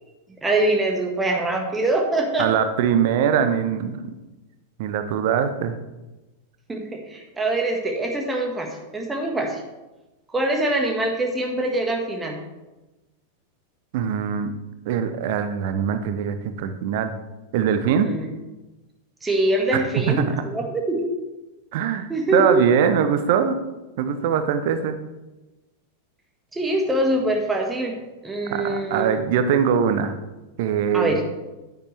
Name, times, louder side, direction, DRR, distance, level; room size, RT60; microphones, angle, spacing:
voice 1, 0.4-2.5 6.7-9.6 10.3-12.4 18.0-18.3 19.2-21.1 22.1-22.6 26.5-27.9 28.2-29.2 30.9-31.2, right 1 dB, 10° right, 2 dB, 1.6 m, -24 dB
voice 2, 2.4-4.1 4.8-5.8 13.9-14.5 14.9-17.1 17.5-18.1 19.7-20.4 21.7-23.5 24.0-25.0 28.5-30.2 30.6-31.1, right 8 dB, 50° right, 9 dB, 0.8 m, -22 dB
9.9 x 9.3 x 3.3 m, 1.1 s
figure-of-eight pair, 90°, 0 cm